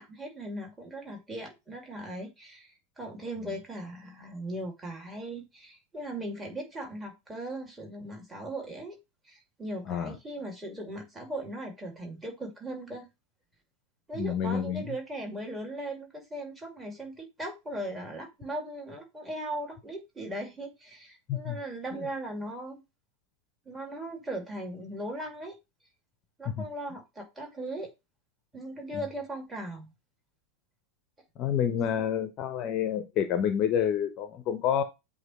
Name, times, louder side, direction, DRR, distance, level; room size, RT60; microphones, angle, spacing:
voice 1, 0.0-9.0 9.2-13.1 14.1-22.8 23.7-25.5 26.4-27.9 28.5-29.9 32.0-32.2, right 1 dB, 10° right, 2.4 m, -38 dB
voice 2, 14.1-14.9 21.3-21.6 26.6-26.7 28.9-29.0 31.4-34.8, left 8 dB, 35° left, 0.7 m, -28 dB
7.8 x 2.8 x 4.3 m
figure-of-eight pair, 90°, 0 cm